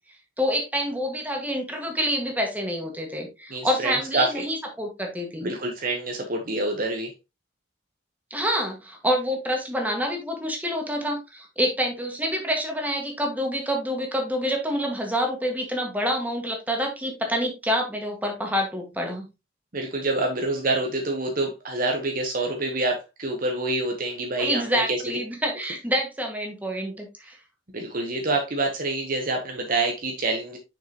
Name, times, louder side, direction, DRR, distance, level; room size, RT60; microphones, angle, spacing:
voice 1, 0.4-5.5 8.3-19.3 24.4-27.4, equal, 10° right, 2 dB, 1.8 m, -27 dB
voice 2, 3.5-4.4 5.4-7.1 19.7-25.2 27.7-30.6, right 2 dB, 45° right, 2 dB, 1.2 m, -27 dB
6.5 x 6.4 x 3.0 m, 0.25 s
head